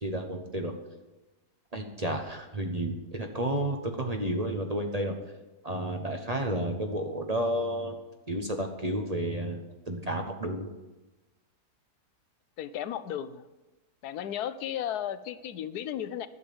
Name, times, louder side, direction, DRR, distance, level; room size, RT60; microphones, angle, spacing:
voice 1, 0.0-0.7 1.7-5.2 5.6-8.0 8.3-10.7, right 1 dB, 30° right, 3 dB, 0.9 m, -31 dB
voice 2, 12.6-13.5 14.0-16.3, left 10 dB, 75° left, 14 dB, 1.2 m, -34 dB
11.0 x 7.0 x 8.5 m, 1.1 s
omnidirectional pair, 1.7 m